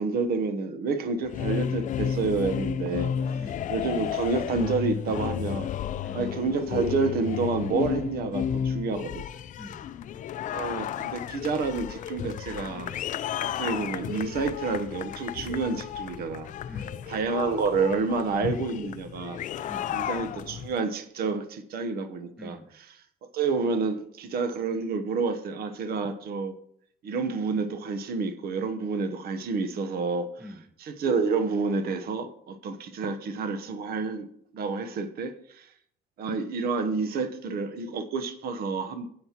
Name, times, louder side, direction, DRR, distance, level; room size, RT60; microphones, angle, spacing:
voice 1, 0.0-3.1 3.7-5.7 6.1-9.2 10.5-13.0 13.4-16.5 17.1-19.4 19.9-22.6 23.3-26.6 27.0-30.3 30.8-34.3 34.5-35.7 36.2-39.1, right 4 dB, 65° right, 9 dB, 0.9 m, -29 dB
sound 1, 1.2-20.8, left 9 dB, 50° left, 0.4 m, -33 dB
voice 2, 3.4-3.7 6.0-6.2 9.6-9.9 16.7-17.0 19.7-20.0 22.4-22.7 30.4-30.6, left 1 dB, 5° right, 8 dB, 0.8 m, -45 dB
9.2 x 7.7 x 2.9 m, 0.67 s
cardioid pair, 110°, 17 cm